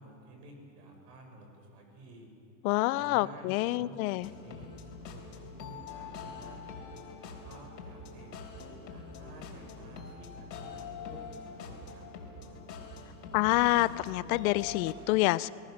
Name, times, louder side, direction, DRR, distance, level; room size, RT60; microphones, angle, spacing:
voice 1, 0.0-2.3 2.9-6.8 7.2-8.3 8.8-12.6, right 1 dB, 70° right, 3 dB, 6.7 m, -52 dB
voice 2, 2.6-4.3 13.3-15.5, left 19 dB, 60° left, 18 dB, 0.7 m, -27 dB
sound 1, 4.2-14.9, left 5 dB, 90° left, 4.3 m, -44 dB
29.5 x 18.5 x 6.5 m, 2.7 s
hypercardioid pair, 110°, 49 cm